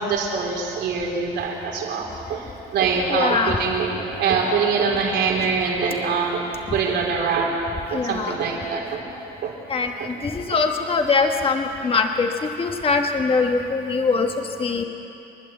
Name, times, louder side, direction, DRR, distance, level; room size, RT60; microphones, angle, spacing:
voice 1, 0.0-2.4 2.7-6.4 6.7-7.5 7.9-9.0 9.4-9.5 10.0-10.1 10.5-10.6, right 5 dB, 80° right, -1 dB, 4.2 m, -24 dB
voice 2, 3.1-3.6 7.9-8.3 9.7-12.3 12.6-14.8, left 4 dB, 30° left, 4 dB, 1.3 m, -22 dB
29.5 x 11.5 x 8.0 m, 2.9 s
cardioid pair, 130°, 18 cm